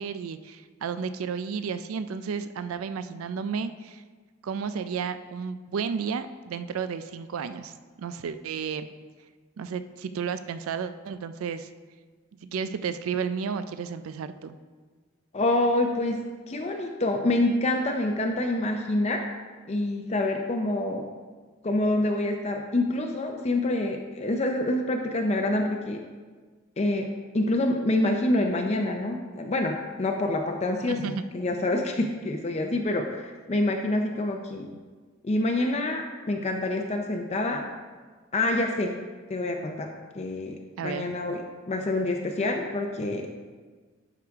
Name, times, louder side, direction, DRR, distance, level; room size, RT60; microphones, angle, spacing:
voice 1, 0.0-4.0 4.4-8.9 9.6-11.7 12.4-14.6 30.9-31.2 40.8-41.1, right 6 dB, 90° right, 11 dB, 0.4 m, -32 dB
voice 2, 15.3-16.2 16.5-19.2 19.7-21.1 21.6-26.0 26.8-27.1 27.3-34.7 35.2-37.6 38.3-38.9 39.3-40.6 40.8-41.4 41.7-43.3, left 2 dB, 30° left, 3 dB, 0.5 m, -26 dB
11.5 x 4.9 x 3.5 m, 1.4 s
head